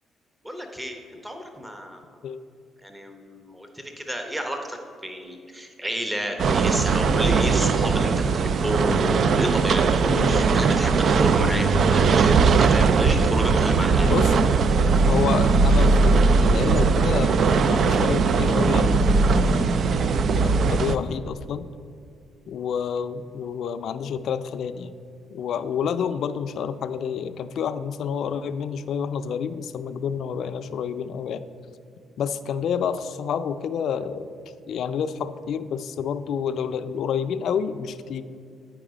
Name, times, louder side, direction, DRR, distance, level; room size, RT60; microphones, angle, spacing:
voice 1, 0.4-2.0 2.8-14.4, equal, 10° right, 4 dB, 0.9 m, -31 dB
sound 1, 6.4-21.0, right 4 dB, 60° right, 0.3 m, -19 dB
voice 2, 10.1-10.5 14.0-14.3 15.1-19.9 20.4-21.7 22.5-24.9 25.3-31.4 32.2-34.3 34.7-38.2, left 7 dB, 70° left, 11 dB, 0.4 m, -29 dB
sound 2, 11.4-12.9 13.1-14.9, right 4 dB, 75° right, 0.8 m, -32 dB
9.4 x 4.8 x 5.0 m, 2.4 s
cardioid pair, 90°, 0 cm